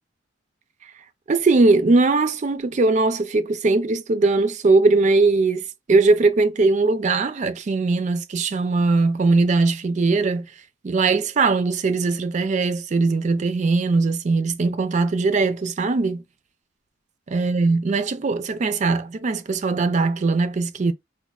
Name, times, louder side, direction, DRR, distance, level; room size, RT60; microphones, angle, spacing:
voice 1, 1.3-10.5 10.8-16.2 17.3-20.9, right 3 dB, 35° right, 0.3 m, -20 dB
4.1 x 2.1 x 2.3 m
head